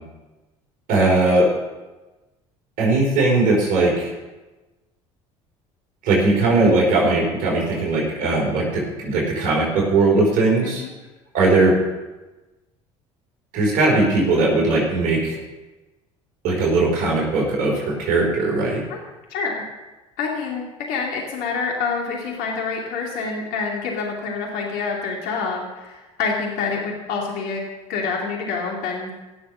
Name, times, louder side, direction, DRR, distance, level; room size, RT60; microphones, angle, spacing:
voice 1, 0.9-1.5 2.8-4.1 6.0-10.8 11.3-11.8 13.5-15.4 16.4-18.8, right 2 dB, 65° right, -2 dB, 4.9 m, -19 dB
voice 2, 19.3-19.6 20.2-27.6 27.9-29.1, left 4 dB, 65° left, -1 dB, 2.6 m, -27 dB
17.0 x 6.9 x 6.8 m, 1.1 s
hypercardioid pair, 65°, 16 cm